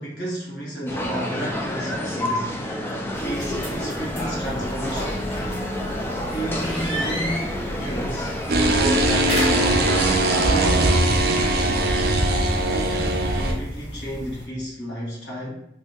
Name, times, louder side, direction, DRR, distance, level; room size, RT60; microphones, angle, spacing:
voice 1, 0.0-2.6 3.2-5.3 6.3-12.0 12.6-15.6, equal, 80° left, -4 dB, 1.3 m, -32 dB
sound 1, 0.9-11.0, left 1 dB, 15° left, 0.4 m, -29 dB
sound 2, 3.1-14.5, equal, 35° left, 1.0 m, -34 dB
sound 3, 8.5-13.5, right 2 dB, 60° right, 0.5 m, -20 dB
2.7 x 2.6 x 3.6 m, 0.79 s
head